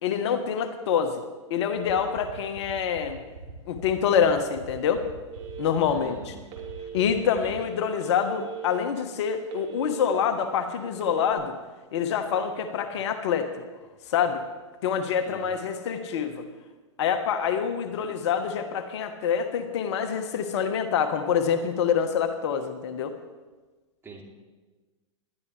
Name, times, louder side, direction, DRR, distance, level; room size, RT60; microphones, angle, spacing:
voice 1, 0.0-1.2 1.5-3.2 3.7-5.0 5.6-6.3 6.9-11.5 11.9-13.5 14.1-14.4 14.8-16.5 17.0-23.1, left 7 dB, 60° left, 8 dB, 1.3 m, -26 dB
sound 1, 1.8-7.8, right 4 dB, 85° right, 2.5 m, -43 dB
Telephone, 5.3-6.0 6.5-7.3 8.0-8.8 9.2-10.3 10.9-11.3, right 9 dB, 40° right, 3.2 m, -39 dB
voice 2, 5.9-6.4 7.4-7.6 15.2-15.5 24.0-24.2, right 4 dB, 15° right, 0 dB, 2.8 m, -44 dB
20.0 x 12.5 x 3.3 m, 1.3 s
hypercardioid pair, 105°, 17 cm